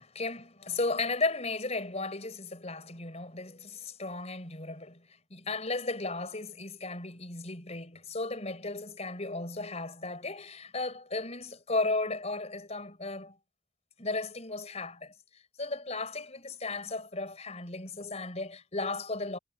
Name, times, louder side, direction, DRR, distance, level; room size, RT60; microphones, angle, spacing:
voice 1, 0.0-13.4 14.0-15.1 15.6-19.4, left 3 dB, 35° left, 4.9 m, -35 dB
head